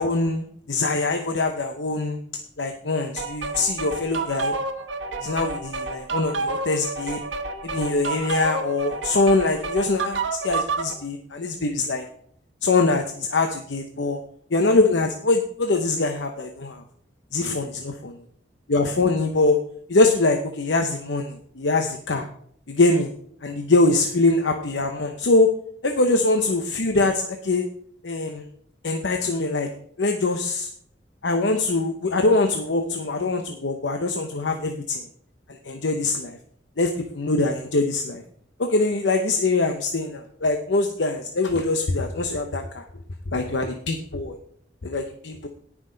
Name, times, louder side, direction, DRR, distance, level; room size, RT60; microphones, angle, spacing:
voice 1, 0.0-2.2 2.6-4.5 5.2-7.2 7.7-12.0 12.6-14.2 14.5-16.8 17.3-17.9 18.7-19.6 19.9-22.3 22.7-23.1 23.4-25.5 25.8-27.7 28.0-28.5 28.8-29.7 30.0-30.7 31.2-35.0 35.5-36.4 36.8-38.2 38.6-42.8 43.3-44.4 44.8-45.5, left 3 dB, 75° left, 5 dB, 0.9 m, -23 dB
sound 1, 3.2-10.9, right 3 dB, 90° right, 1.2 m, -29 dB
17.5 x 6.1 x 3.9 m, 0.63 s
head